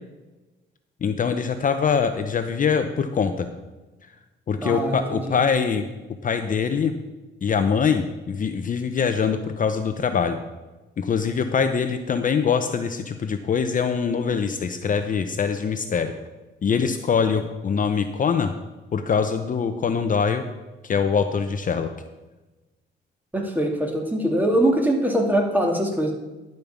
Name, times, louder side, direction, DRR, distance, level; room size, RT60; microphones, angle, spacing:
voice 1, 1.0-3.5 4.5-5.9 6.2-6.9 7.4-10.4 11.0-16.1 16.6-18.5 18.9-20.4 20.8-21.9, left 6 dB, 40° left, 8 dB, 0.7 m, -23 dB
voice 2, 4.6-5.4 23.3-26.1, right 1 dB, 10° right, 2 dB, 2.3 m, -22 dB
11.5 x 5.3 x 7.1 m, 1.1 s
cardioid pair, 90°, 20 cm